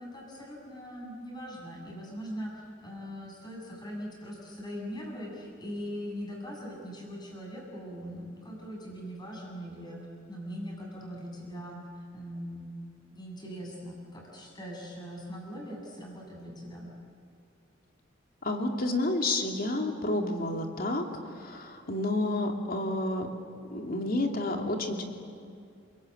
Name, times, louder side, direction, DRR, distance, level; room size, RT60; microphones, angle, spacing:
voice 1, 0.0-10.0 10.3-11.8 12.1-12.7 13.1-16.9, equal, 20° left, -1 dB, 7.4 m, -41 dB
voice 2, 18.4-23.3 23.7-25.0, left 2 dB, 50° left, 3 dB, 3.0 m, -30 dB
29.0 x 23.0 x 8.7 m, 2.4 s
head